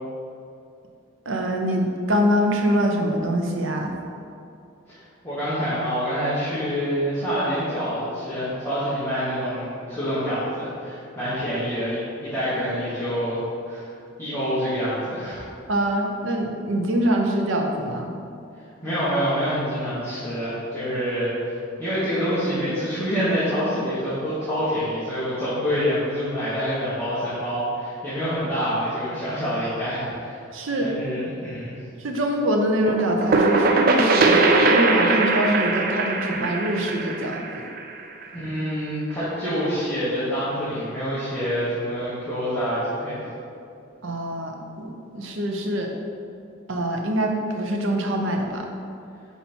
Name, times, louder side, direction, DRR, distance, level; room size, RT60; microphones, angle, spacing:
voice 1, 1.3-3.9 15.7-18.1 30.5-30.9 32.0-37.6 44.0-45.9 46.7-48.7, equal, 75° right, 2 dB, 0.7 m, -24 dB
voice 2, 4.9-13.4 13.6-13.9 14.2-15.5 18.8-30.4 30.8-31.7 38.4-43.3, equal, 10° left, -14 dB, 1.3 m, -26 dB
sound 1, 32.9-38.4, right 3 dB, 45° right, 0.4 m, -20 dB
5.7 x 4.1 x 4.3 m, 2.5 s
head